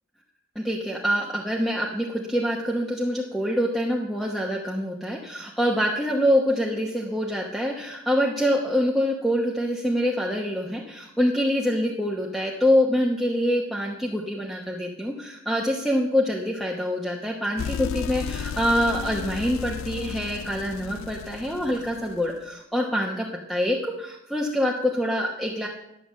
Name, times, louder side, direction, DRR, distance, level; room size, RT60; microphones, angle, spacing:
voice 1, 0.5-25.7, equal, ahead, -2 dB, 1.0 m, -25 dB
sound 1, 17.6-22.4, left 7 dB, 70° left, 0.4 m, -34 dB
11.5 x 6.8 x 7.5 m, 0.87 s
head